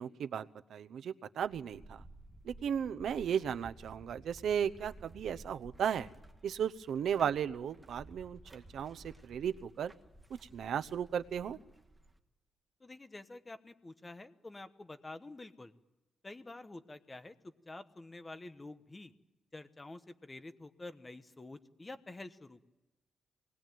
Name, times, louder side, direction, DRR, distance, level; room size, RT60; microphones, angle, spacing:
voice 1, 0.0-2.0 2.4-6.1 6.4-9.9 10.3-11.6, right 8 dB, 65° right, 11 dB, 0.8 m, -35 dB
sound 1, 1.4-12.2, right 1 dB, 10° right, 1.6 m, -55 dB
voice 2, 12.8-15.7 16.2-19.1 19.5-22.6, left 2 dB, 15° left, 10 dB, 1.1 m, -48 dB
25.5 x 20.5 x 9.3 m, 1.0 s
wide cardioid pair, 165°, 0 cm